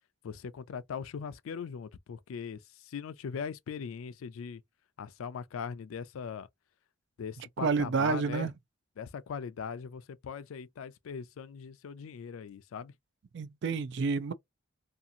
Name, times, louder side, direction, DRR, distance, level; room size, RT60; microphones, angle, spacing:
voice 1, 0.2-4.6 5.0-6.5 7.2-8.5 9.0-12.9, left 6 dB, 90° left, 0.4 m, -40 dB
voice 2, 7.6-8.5 13.3-14.3, right 5 dB, 60° right, 0.4 m, -29 dB
2.7 x 2.4 x 2.6 m
head